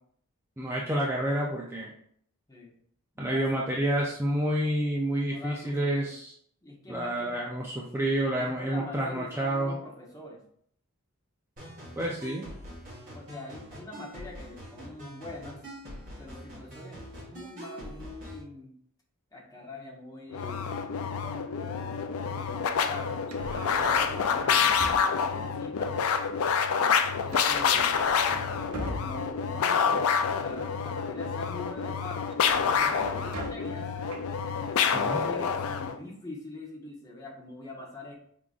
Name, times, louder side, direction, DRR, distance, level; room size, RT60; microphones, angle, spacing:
voice 1, 0.6-1.9 3.2-6.3 6.9-9.8 12.0-12.5 34.9-35.2, right 1 dB, 10° right, -3 dB, 0.5 m, -29 dB
voice 2, 3.1-3.5 5.2-6.1 6.6-7.4 8.3-10.4 13.1-15.6 16.2-18.7 19.3-23.2 23.7-26.0 27.2-28.0 29.0-32.4 32.7-33.9 34.5-38.1, left 2 dB, 15° left, -2 dB, 0.9 m, -44 dB
sound 1, 11.6-18.4, equal, 40° right, 1.8 m, -44 dB
sound 2, 20.3-36.0, left 6 dB, 65° left, 0.4 m, -27 dB
sound 3, 23.2-25.3 27.3-29.4 32.3-33.8 34.1-34.3, right 2 dB, 70° right, 0.7 m, -39 dB
4.7 x 3.7 x 2.4 m, 0.65 s
head